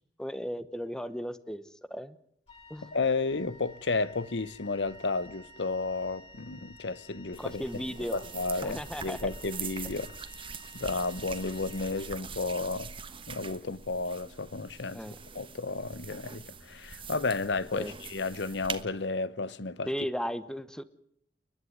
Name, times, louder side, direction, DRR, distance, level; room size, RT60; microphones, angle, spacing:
voice 1, 0.2-1.6 1.9-2.2 2.7-2.9 7.4-8.2 8.6-9.2 14.9-15.2 17.7-17.9 19.9-20.8, equal, 5° left, 1.0 m, -35 dB
Wind instrument woodwind instrument, 2.5-12.6, left 1 dB, 35° left, 4.9 m, -53 dB
voice 2, 2.8-7.8 8.1-10.1 10.7-12.9 13.3-19.9, left 3 dB, 85° left, 0.9 m, -32 dB
sound 1, 7.3-18.8, right 5 dB, 30° right, 1.3 m, -43 dB
29.5 x 11.5 x 9.6 m
head